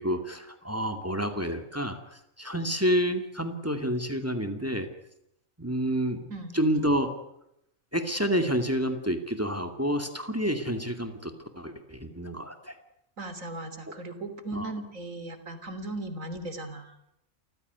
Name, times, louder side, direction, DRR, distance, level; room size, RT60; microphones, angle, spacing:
voice 1, 0.0-4.9 5.6-6.3 6.5-7.1 7.9-12.8 14.5-14.7, equal, 10° right, 7 dB, 2.4 m, -29 dB
voice 2, 13.2-17.0, right 2 dB, 75° right, 9 dB, 3.5 m, -37 dB
29.0 x 15.0 x 9.5 m, 0.79 s
omnidirectional pair, 1.4 m